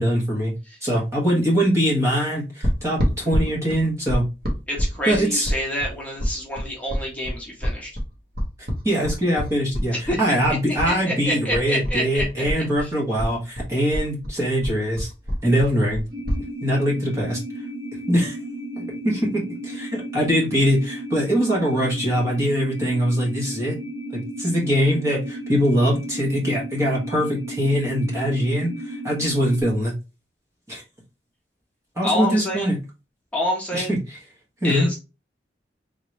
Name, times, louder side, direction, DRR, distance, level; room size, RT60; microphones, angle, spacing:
voice 1, 0.0-0.5 0.8-4.2 5.1-5.5 8.8-15.1 15.4-16.0 16.6-17.4 18.1-18.4 18.8-23.8 24.1-29.9 30.7-30.8 32.0-32.8 33.7-34.2 34.6-34.9, equal, 15° right, -4 dB, 1.3 m, -22 dB
sound 1, 2.6-10.9 11.2-12.9 13.2-16.4, equal, 55° right, 1.3 m, -26 dB
voice 2, 4.7-7.9 9.9-10.6 10.8-12.9 32.0-32.7 33.3-33.9 34.6-35.0, left 1 dB, 10° left, -3 dB, 1.2 m, -28 dB
sound 2, 16.1-29.6, right 1 dB, 85° right, 1.9 m, -34 dB
3.7 x 3.0 x 3.1 m, 0.28 s
head